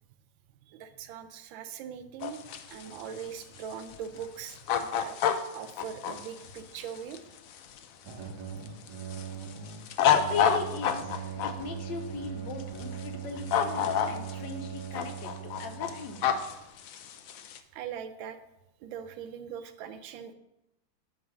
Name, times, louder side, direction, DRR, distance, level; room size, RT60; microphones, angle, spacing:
voice 1, 0.7-2.4 2.7-5.2 5.5-7.2 17.7-18.4 18.8-20.3, right 8 dB, 85° right, 10 dB, 1.4 m, -41 dB
sound 1, 2.2-8.2 8.7-11.5 12.6-13.1 13.4-14.5 14.8-17.6, left 8 dB, 85° left, 0.7 m, -29 dB
sound 2, 8.0-16.6, right 8 dB, 65° right, 1.3 m, -40 dB
voice 2, 10.1-16.2, left 4 dB, 70° left, 6 dB, 1.5 m, -38 dB
8.9 x 3.1 x 6.2 m, 0.89 s
omnidirectional pair, 2.1 m